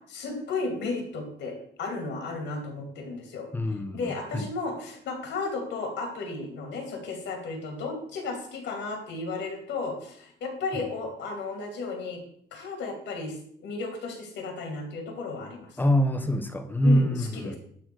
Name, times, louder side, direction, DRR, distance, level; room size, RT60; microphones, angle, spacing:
voice 1, 0.1-3.5 3.9-12.2 12.5-13.4 13.6-15.8 16.8-17.5, left 3 dB, 70° left, 3 dB, 2.8 m, -34 dB
voice 2, 3.5-4.5 15.8-17.6, equal, 10° left, 8 dB, 0.9 m, -25 dB
11.5 x 4.2 x 6.2 m, 0.65 s
cardioid pair, 165°, 19 cm